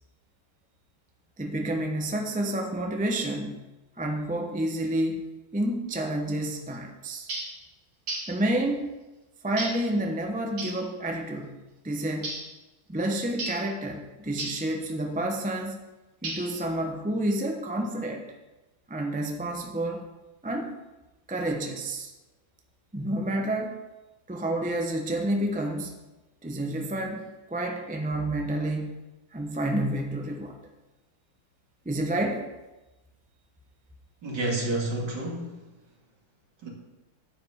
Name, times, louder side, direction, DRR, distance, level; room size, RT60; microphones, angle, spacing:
voice 1, 1.4-3.6 4.0-5.3 5.5-7.3 8.3-8.9 9.4-11.6 11.8-12.4 12.9-15.8 16.2-18.2 18.9-20.0 20.4-20.7 21.3-22.1 22.9-23.8 24.3-26.0 26.4-29.0 29.3-30.5 31.8-32.5, right 1 dB, 10° right, 2 dB, 0.4 m, -29 dB
sound 1, 7.3-7.6 8.1-8.4 9.6-9.9 10.6-10.8 12.2-12.5 13.4-13.7 14.4-14.7 16.2-16.7, right 2 dB, 75° right, 3.0 m, -34 dB
voice 2, 34.2-35.6 36.6-36.7, right 2 dB, 55° right, -2 dB, 2.8 m, -29 dB
10.5 x 5.1 x 8.0 m, 1.1 s
omnidirectional pair, 2.2 m